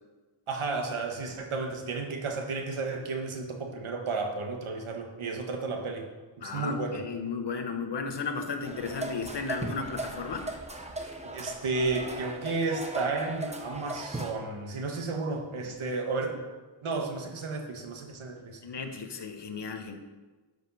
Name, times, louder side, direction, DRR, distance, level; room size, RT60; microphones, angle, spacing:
voice 1, 0.5-6.1 6.4-7.0 11.3-16.4 16.8-18.6, right 3 dB, 90° right, 3 dB, 1.6 m, -32 dB
voice 2, 6.4-10.5 18.6-20.0, left 4 dB, 60° left, 5 dB, 1.2 m, -34 dB
sound 1, 8.6-14.3, right 1 dB, 15° right, 0.9 m, -38 dB
12.5 x 5.3 x 5.5 m, 1.3 s
wide cardioid pair, 140°, 48 cm